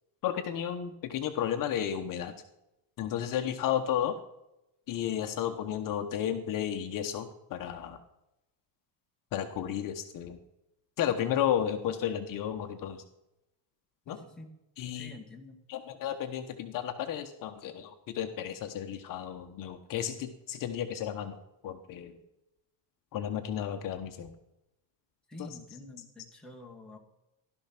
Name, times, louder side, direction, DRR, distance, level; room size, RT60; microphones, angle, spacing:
voice 1, 0.2-2.3 3.0-4.2 4.9-8.0 9.3-10.4 11.0-13.0 14.1-14.2 14.8-15.1 15.7-21.3 21.6-22.2 23.1-24.3, left 10 dB, 45° left, 6 dB, 1.1 m, -33 dB
voice 2, 14.1-14.5 14.9-15.6 25.3-27.0, left 2 dB, ahead, 0 dB, 1.5 m, -48 dB
15.5 x 12.0 x 5.9 m, 0.90 s
cardioid pair, 175°, 45 cm